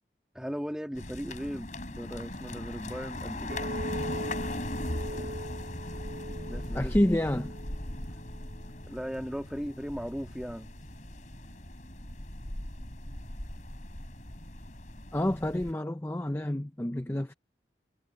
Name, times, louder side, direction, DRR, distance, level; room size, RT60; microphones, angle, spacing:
voice 1, 0.3-3.7 5.1-5.4 5.9-6.0 6.4-7.0 8.8-10.7, equal, 5° right, 2.0 m, -38 dB
sound 1, 0.9-15.7, left 1 dB, 45° left, 3.6 m, -39 dB
Chink clink, 3.5-8.7, right 1 dB, 50° right, 6.3 m, -41 dB
voice 2, 6.7-7.6 15.1-17.3, left 1 dB, 15° left, 0.6 m, -28 dB
head